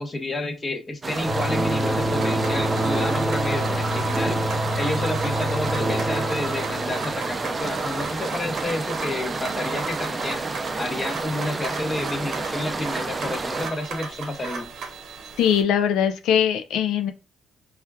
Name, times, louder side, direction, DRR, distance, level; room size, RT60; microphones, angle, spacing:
voice 1, 0.0-4.4 4.8-10.4 10.8-14.7, left 2 dB, 30° left, 6 dB, 0.7 m, -30 dB
sound 1, 1.0-13.7, right 3 dB, 30° right, 0.4 m, -30 dB
sound 2, 1.1-15.6, right 4 dB, 70° right, 0.7 m, -36 dB
sound 3, 1.2-8.5, right 1 dB, ahead, 0.7 m, -27 dB
voice 2, 15.4-17.1, left 9 dB, 85° left, 9 dB, 0.4 m, -21 dB
4.2 x 2.4 x 2.2 m, 0.31 s
cardioid pair, 90°, 0 cm